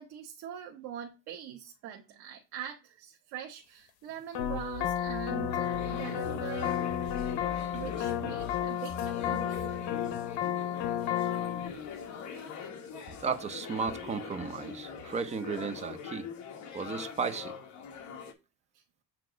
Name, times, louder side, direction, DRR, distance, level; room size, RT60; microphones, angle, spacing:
voice 1, 0.0-6.8 7.7-9.7 10.3-10.6 18.7-18.8, right 10 dB, 85° right, 1.1 m, -43 dB
sound 1, 4.3-11.7, left 10 dB, 85° left, 0.9 m, -32 dB
sound 2, 4.4-9.9, left 5 dB, 35° left, 1.8 m, -44 dB
sound 3, 5.5-18.3, left 6 dB, 50° left, 1.2 m, -43 dB
voice 2, 13.2-16.3 16.7-17.5, right 5 dB, 20° right, 0.5 m, -34 dB
7.8 x 2.9 x 4.9 m
cardioid pair, 175°, 37 cm